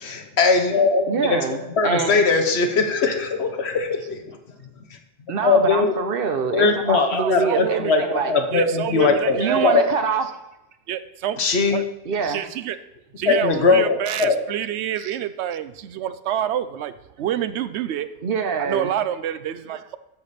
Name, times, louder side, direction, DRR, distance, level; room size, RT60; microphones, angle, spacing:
voice 1, 0.0-4.2 5.4-5.9 6.5-9.8 11.4-11.8 13.3-14.4, left 4 dB, 75° left, 5 dB, 1.3 m, -20 dB
voice 2, 1.1-2.2 5.3-8.3 9.3-10.4 12.1-12.4 15.0-15.2 18.2-18.9, right 5 dB, 60° right, 7 dB, 1.0 m, -25 dB
voice 3, 7.2-7.9 8.5-9.8 10.9-11.4 11.7-11.9 12.3-12.8 13.2-18.1 18.6-20.0, right 10 dB, 90° right, 13 dB, 0.9 m, -27 dB
13.5 x 5.0 x 4.2 m, 0.89 s
omnidirectional pair, 1.1 m